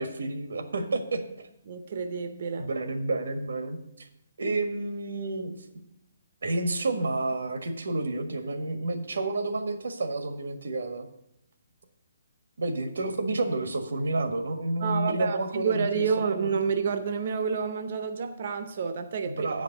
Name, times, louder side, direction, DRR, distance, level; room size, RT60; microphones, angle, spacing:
voice 1, 0.0-1.5 2.6-4.1 4.4-5.5 6.4-11.1 12.6-16.0 16.4-16.5 19.2-19.6, right 2 dB, 85° right, 7 dB, 1.5 m, -30 dB
voice 2, 1.7-2.7 14.8-19.6, right 6 dB, 45° right, 8 dB, 0.7 m, -29 dB
9.0 x 5.2 x 7.9 m, 0.77 s
hypercardioid pair, 170°, 0 cm